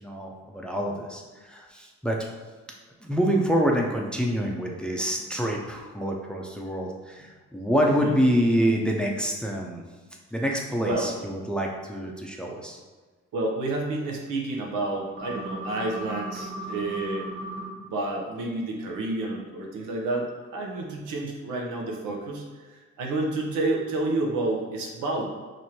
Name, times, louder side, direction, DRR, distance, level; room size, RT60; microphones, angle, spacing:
voice 1, 0.0-2.2 3.0-9.8 10.3-12.8 16.4-16.5, equal, 5° left, 0 dB, 0.5 m, -26 dB
voice 2, 10.8-11.1 13.3-17.3 17.8-22.4 22.7-25.3, right 2 dB, 90° right, 0 dB, 0.8 m, -29 dB
sound 1, 15.2-17.7, right 1 dB, 20° right, 1.4 m, -36 dB
3.0 x 2.6 x 4.3 m, 1.4 s
cardioid pair, 90°, 30 cm